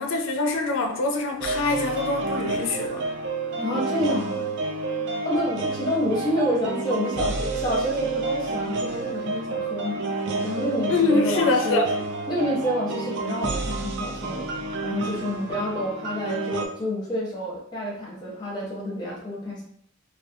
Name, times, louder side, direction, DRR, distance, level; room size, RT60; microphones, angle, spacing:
voice 1, 0.0-3.0 10.9-11.9, left 3 dB, 70° left, 4 dB, 0.4 m, -24 dB
sound 1, 1.4-16.7, right 3 dB, 55° right, 0.3 m, -29 dB
voice 2, 3.6-4.4 5.2-10.0 10.4-11.8 12.3-14.4 14.8-19.6, equal, 20° left, -5 dB, 0.7 m, -28 dB
2.3 x 2.3 x 2.6 m, 0.68 s
head